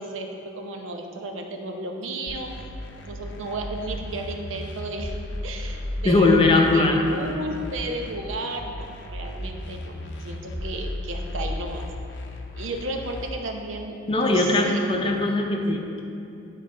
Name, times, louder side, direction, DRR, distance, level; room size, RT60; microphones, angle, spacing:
voice 1, 0.0-2.5 3.0-5.1 5.4-6.4 6.7-9.9 10.2-11.8 12.5-15.2, right 2 dB, 90° right, 3 dB, 0.7 m, -34 dB
sound 1, 2.3-13.3, left 1 dB, 65° left, 0.6 m, -35 dB
voice 2, 6.0-7.0 14.1-16.0, left 2 dB, 25° left, 2 dB, 0.6 m, -20 dB
10.0 x 4.1 x 3.7 m, 2.7 s
head